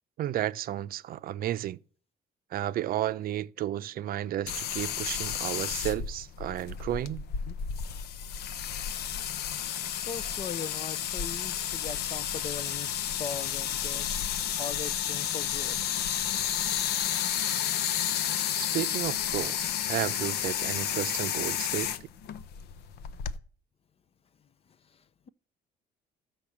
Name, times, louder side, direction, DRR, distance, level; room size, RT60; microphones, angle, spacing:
voice 1, 0.2-1.8 2.5-7.3 18.6-21.9, right 13 dB, 60° right, 0.6 m, -32 dB
sound 1, 4.5-23.4, left 9 dB, 75° left, 0.8 m, -31 dB
voice 2, 10.1-12.9 13.2-14.1 14.6-15.8 24.9-25.3, left 6 dB, 35° left, 0.6 m, -40 dB
14.0 x 5.3 x 7.2 m
cardioid pair, 110°, 17 cm